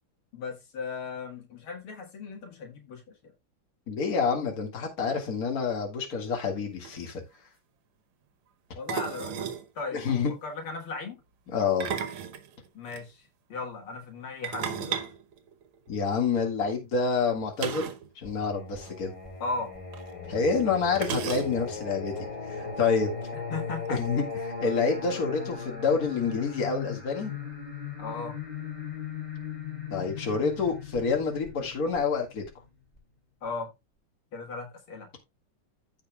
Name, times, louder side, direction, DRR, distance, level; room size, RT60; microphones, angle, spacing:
voice 1, 0.3-3.3 8.8-9.5 9.8-11.2 12.7-15.0 19.4-19.7 23.3-24.0 28.0-28.4 33.4-33.7 34.3-35.1, left 3 dB, 75° left, 2.5 m, -37 dB
voice 2, 3.9-7.2 9.9-10.3 11.5-11.9 15.9-17.9 18.2-19.1 20.3-22.1 22.5-23.1 23.9-27.3 29.9-32.4, left 5 dB, 45° left, 2.3 m, -28 dB
sound 1, 6.6-6.7 6.8-7.1 8.9-9.7 11.6-13.0 14.4-16.1 17.6-18.1 18.3-18.4 18.8-18.9 19.9-20.0 21.0-21.8, right 8 dB, 75° right, 1.8 m, -34 dB
Singing, 18.2-33.0, left 5 dB, 20° left, 2.9 m, -38 dB
15.0 x 5.4 x 2.3 m
omnidirectional pair, 2.4 m